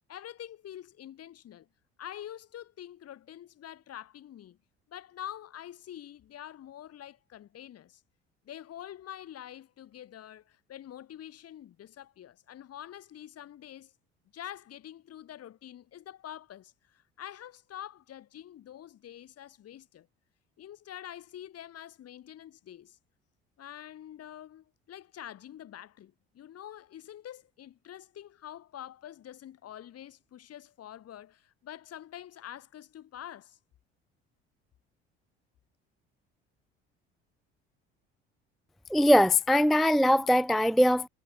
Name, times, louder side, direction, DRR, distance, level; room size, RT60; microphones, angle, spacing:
voice 1, 0.0-1.7 2.0-4.6 4.9-8.0 8.4-13.9 14.3-20.1 20.6-23.0 23.6-33.6, left 11 dB, 50° left, 2.8 m, -46 dB
voice 2, 38.9-41.1, left 1 dB, ahead, 0.4 m, -22 dB
figure-of-eight pair, 55°, 32 cm